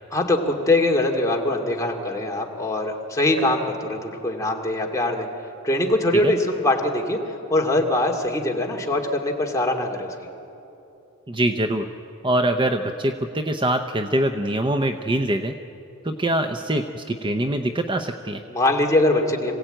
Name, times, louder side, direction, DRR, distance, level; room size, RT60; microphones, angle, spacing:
voice 1, 0.1-5.3 5.6-7.2 7.5-10.1 18.5-19.5, left 2 dB, 15° left, 0 dB, 2.4 m, -22 dB
voice 2, 11.3-11.9 12.2-15.5 16.0-18.4, right 1 dB, 20° right, 6 dB, 0.7 m, -23 dB
26.5 x 16.5 x 9.0 m, 2.9 s
head